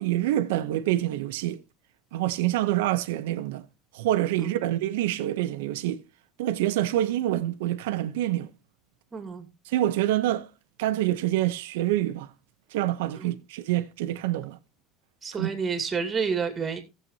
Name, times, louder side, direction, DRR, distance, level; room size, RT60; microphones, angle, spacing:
voice 1, 0.0-1.6 2.1-3.6 3.9-6.0 6.4-8.5 9.7-10.5 10.8-12.3 12.7-14.6 15.4-15.5, right 14 dB, 85° right, 0.7 m, -26 dB
voice 2, 9.1-9.5 13.2-13.4 15.2-16.8, right 6 dB, 25° right, 2.4 m, -30 dB
15.5 x 7.6 x 2.8 m
supercardioid pair, 115°, 0 cm